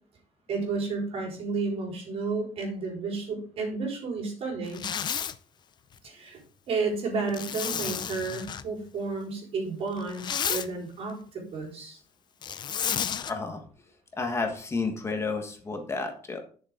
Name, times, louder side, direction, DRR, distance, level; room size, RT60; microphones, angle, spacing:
voice 1, 0.5-4.9 6.0-6.4 6.7-12.0, right 4 dB, 60° right, 0 dB, 4.3 m, -32 dB
Zipper (clothing), 4.7-5.4 7.3-8.6 10.0-10.7 12.4-13.3, left 8 dB, 40° left, 0.6 m, -31 dB
voice 2, 13.3-13.6 14.2-16.4, left 3 dB, 25° left, 4 dB, 1.4 m, -31 dB
11.0 x 6.8 x 3.8 m, 0.43 s
cardioid pair, 150°, 11 cm